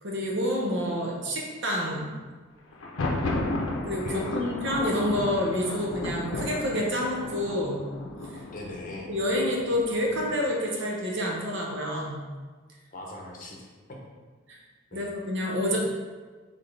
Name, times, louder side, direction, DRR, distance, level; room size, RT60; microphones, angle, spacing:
voice 1, 0.0-2.2 3.8-7.8 8.3-8.4 9.1-12.2 14.5-14.6 14.9-15.8, left 1 dB, 60° right, -1 dB, 0.8 m, -28 dB
Thunder, 2.7-10.5, left 2 dB, 80° left, 0.6 m, -33 dB
voice 2, 4.0-4.5 8.5-9.1 12.9-14.0 14.9-15.1, left 1 dB, 40° left, -1 dB, 0.8 m, -41 dB
4.3 x 3.6 x 3.3 m, 1.4 s
head